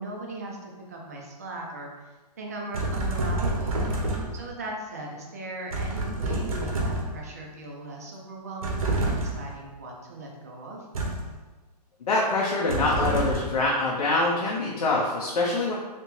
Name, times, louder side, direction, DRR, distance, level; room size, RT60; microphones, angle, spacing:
voice 1, 0.0-1.9 2.4-3.8 4.3-10.9, right 2 dB, 25° right, -1 dB, 0.4 m, -38 dB
sound 1, 2.7-4.5 5.7-7.3 8.6-9.5 10.9-11.4 12.7-13.6, right 1 dB, 55° right, 0.7 m, -28 dB
voice 2, 12.0-15.8, left 2 dB, 70° left, -3 dB, 0.7 m, -25 dB
3.3 x 2.9 x 3.0 m, 1.2 s
hypercardioid pair, 170°, 21 cm